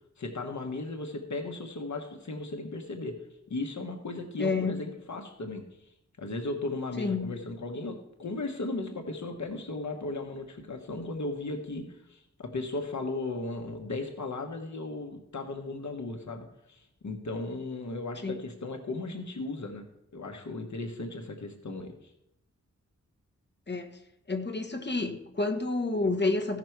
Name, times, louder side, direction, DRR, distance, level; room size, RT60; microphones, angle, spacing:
voice 1, 0.2-3.2 3.5-5.6 6.2-19.8 20.1-22.1, left 2 dB, 70° left, 4 dB, 1.2 m, -36 dB
voice 2, 4.4-4.8 7.0-7.4 18.2-18.4 23.7-23.9 24.3-26.6, left 3 dB, 35° left, 5 dB, 1.3 m, -29 dB
15.5 x 6.0 x 4.6 m, 0.84 s
wide cardioid pair, 65°, 30 cm